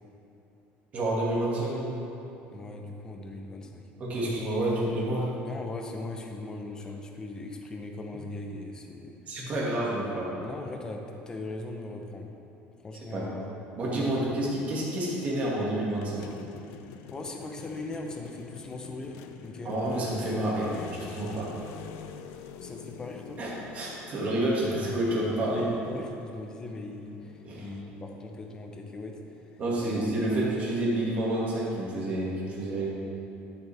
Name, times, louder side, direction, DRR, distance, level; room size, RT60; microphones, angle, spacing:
voice 1, 0.9-2.1 4.0-5.3 9.3-10.3 13.1-13.4 13.8-16.2 19.6-21.7 23.4-25.7 27.4-27.7 29.6-32.9, right 1 dB, 30° right, -5 dB, 2.0 m, -29 dB
voice 2, 2.5-3.9 5.4-9.2 10.4-12.3 12.8-13.5 14.0-14.1 17.1-19.2 19.4-19.7 22.6-23.4 25.8-29.2 29.7-30.0, left 2 dB, 15° left, 2 dB, 0.7 m, -39 dB
sound 1, 15.9-30.3, left 8 dB, 75° left, 0.5 m, -47 dB
12.0 x 7.0 x 3.5 m, 2.9 s
cardioid pair, 165°, 5 cm